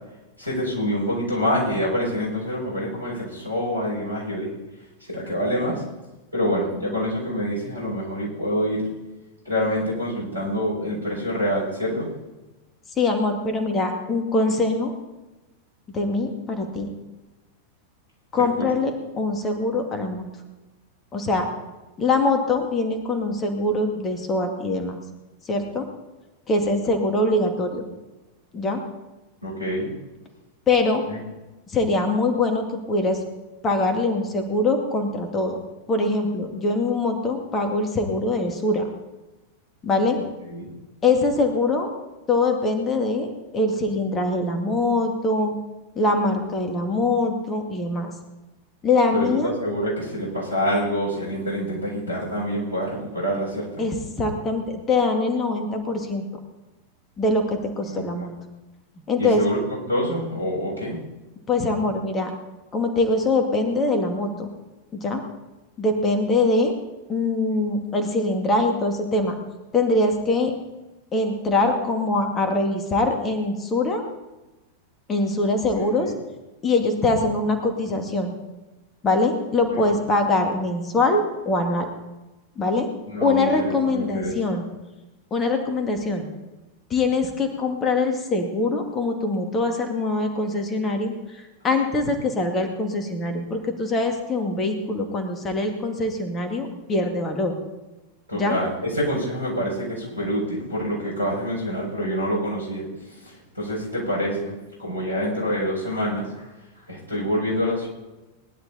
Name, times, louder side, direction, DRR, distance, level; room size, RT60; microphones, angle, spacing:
voice 1, 0.4-4.5 5.1-5.8 6.3-8.8 9.4-12.1 29.4-29.9 31.1-31.2 40.5-40.7 49.1-53.7 57.9-58.3 59.2-59.6 59.9-61.0 75.9-76.1 79.7-79.9 83.1-83.5 83.9-84.4 98.3-102.8 103.1-106.5 106.9-107.9, equal, 85° right, -3 dB, 6.4 m, -26 dB
voice 2, 13.0-14.9 15.9-16.9 18.3-20.3 21.1-21.5 22.0-25.0 25.4-25.9 26.5-27.8 28.5-28.8 30.7-31.0 31.7-33.2 33.6-35.6 35.9-38.9 39.8-40.2 41.0-41.9 42.3-45.6 46.0-48.1 48.8-49.5 53.8-56.2 57.2-58.3 59.1-59.4 61.5-62.3 62.7-64.5 64.9-65.2 65.8-66.8 67.1-69.3 69.7-70.5 71.1-74.0 75.1-76.1 76.6-78.4 79.0-81.9 82.6-82.9 83.2-84.6 85.3-86.3 86.9-97.5 98.3-98.6, left 2 dB, 25° left, 5 dB, 2.3 m, -23 dB
19.5 x 11.0 x 4.2 m, 1.1 s
figure-of-eight pair, 90°, 0 cm